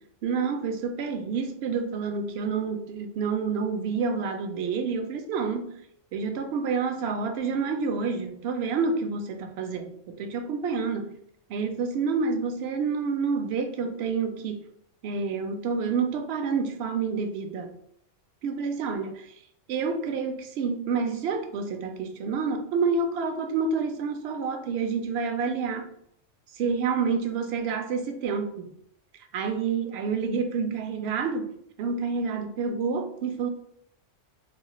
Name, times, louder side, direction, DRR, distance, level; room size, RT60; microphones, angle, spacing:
voice 1, 0.2-5.8 6.1-11.2 11.5-14.6 15.0-17.7 18.4-19.3 19.7-25.9 26.5-28.7 29.3-33.5, right 5 dB, 65° right, 0.7 m, -28 dB
4.0 x 2.4 x 2.9 m
omnidirectional pair, 1.3 m